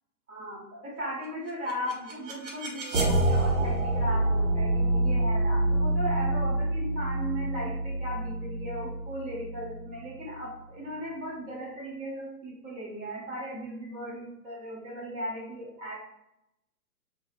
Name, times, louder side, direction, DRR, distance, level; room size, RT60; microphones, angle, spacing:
voice 1, 0.3-15.9, equal, 25° right, -5 dB, 1.3 m, -37 dB
sound 1, 1.5-10.4, right 1 dB, 50° right, 1.2 m, -27 dB
3.7 x 2.4 x 2.3 m, 0.83 s
figure-of-eight pair, 115°, 47 cm